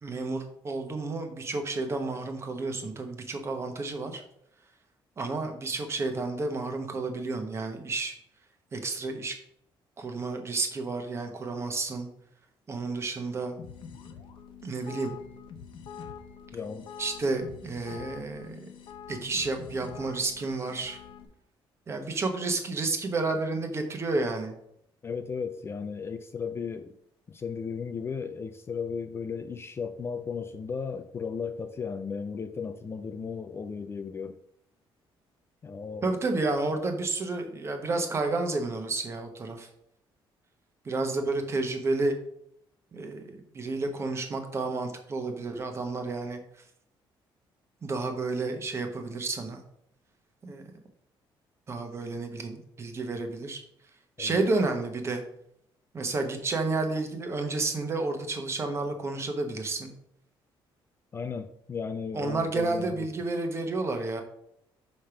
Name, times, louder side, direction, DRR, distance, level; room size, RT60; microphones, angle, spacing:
voice 1, 0.0-4.2 5.2-8.1 8.7-9.4 10.0-12.1 12.7-13.5 14.6-15.2 17.0-18.7 19.1-21.0 21.9-24.5 36.0-39.7 40.8-42.1 42.9-46.4 47.8-49.6 50.4-50.6 51.7-53.6 54.2-55.2 55.9-59.9 62.1-64.2, right 3 dB, 30° right, 1.1 m, -31 dB
sound 1, 13.6-21.3, left 7 dB, 70° left, 1.1 m, -45 dB
voice 2, 16.5-16.9 25.0-26.9 27.3-34.4 35.6-36.2 54.2-54.4 61.1-63.1, left 5 dB, 25° left, 0.4 m, -35 dB
5.4 x 5.1 x 5.8 m
cardioid pair, 145°, 9 cm